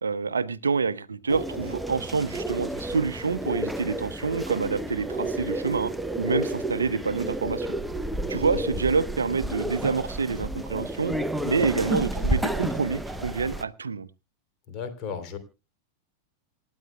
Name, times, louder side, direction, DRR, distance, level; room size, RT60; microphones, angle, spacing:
voice 1, 0.0-7.7 8.3-11.1 11.4-14.1, right 5 dB, 75° right, 0.6 m, -27 dB
sound 1, 1.3-13.6, right 1 dB, 5° right, 0.8 m, -31 dB
voice 2, 14.7-15.4, left 6 dB, 35° left, 3.2 m, -35 dB
27.5 x 9.4 x 2.3 m
figure-of-eight pair, 90°, 0 cm